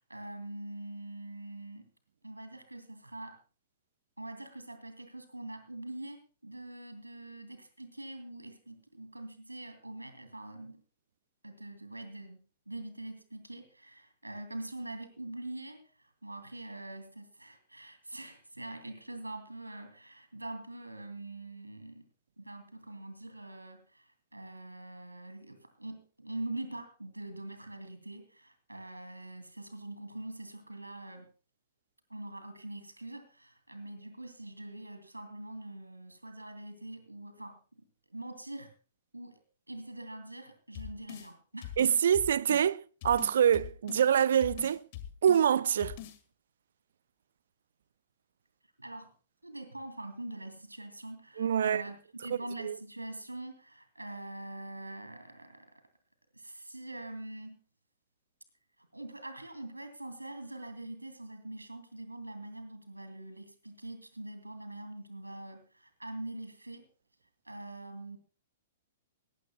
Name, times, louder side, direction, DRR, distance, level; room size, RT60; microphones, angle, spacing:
voice 1, 0.0-1.9 2.2-3.4 4.2-10.8 11.4-22.1 22.4-24.0 24.3-31.3 32.1-37.8 38.1-38.7 39.1-39.4 39.7-42.1 48.8-49.1 49.4-55.8 56.3-57.6 58.9-66.8 67.5-68.2, right 1 dB, 85° right, 2.6 m, -44 dB
sound 1, 40.7-41.3 41.6-42.7 43.0-44.1 44.4-45.5 45.8-46.2, left 11 dB, 45° left, 1.8 m, -43 dB
voice 2, 41.8-44.9 45.2-46.0 51.4-51.8 52.6-52.8, right 9 dB, 60° right, 0.5 m, -25 dB
19.0 x 16.0 x 2.3 m
figure-of-eight pair, 110°, 0 cm